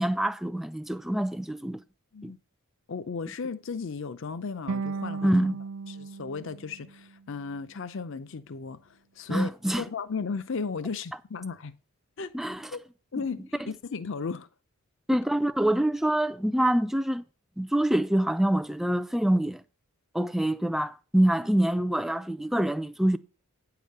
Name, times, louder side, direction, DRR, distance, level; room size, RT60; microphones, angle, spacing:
voice 1, 0.0-1.8 2.2-2.3 5.2-5.6 9.3-9.9 12.3-12.7 15.1-17.2 17.6-19.6 20.1-23.2, right 1 dB, ahead, 0.3 m, -25 dB
voice 2, 2.9-5.3 5.9-11.8 12.2-12.3 12.7-12.8 13.1-14.5, left 5 dB, 60° left, 0.5 m, -35 dB
sound 1, 4.7-7.8, right 4 dB, 65° right, 0.4 m, -36 dB
9.4 x 4.9 x 6.6 m
head